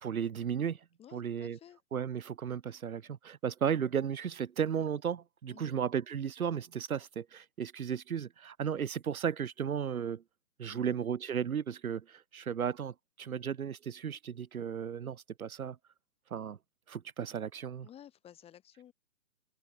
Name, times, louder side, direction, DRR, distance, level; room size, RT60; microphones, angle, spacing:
voice 1, 0.0-0.8 1.1-1.6 1.9-10.2 10.6-15.8 16.3-16.6 16.9-17.9, right 8 dB, 75° right, 1.5 m, -35 dB
voice 2, 1.0-1.8 5.5-5.8 10.7-11.0 17.8-18.9, left 10 dB, 15° left, 4.3 m, -54 dB
hypercardioid pair, 150°, 43 cm